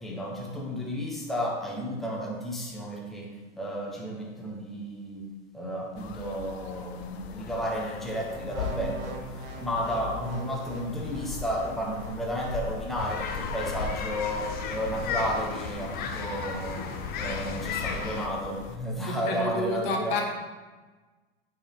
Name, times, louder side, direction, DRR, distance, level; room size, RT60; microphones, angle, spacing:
voice 1, 0.0-5.2 5.5-9.2 9.6-16.9 17.2-20.2, equal, ahead, -3 dB, 1.1 m, -32 dB
sound 1, 6.0-18.8, left 5 dB, 85° left, 0.7 m, -40 dB
sound 2, 8.3-12.6 13.2-13.4, right 5 dB, 65° right, 1.3 m, -43 dB
sound 3, 13.0-18.3, left 5 dB, 30° left, 0.7 m, -35 dB
voice 2, 19.0-20.2, left 2 dB, 55° left, 2 dB, 1.4 m, -29 dB
8.8 x 4.7 x 3.6 m, 1.3 s
supercardioid pair, 140°, 31 cm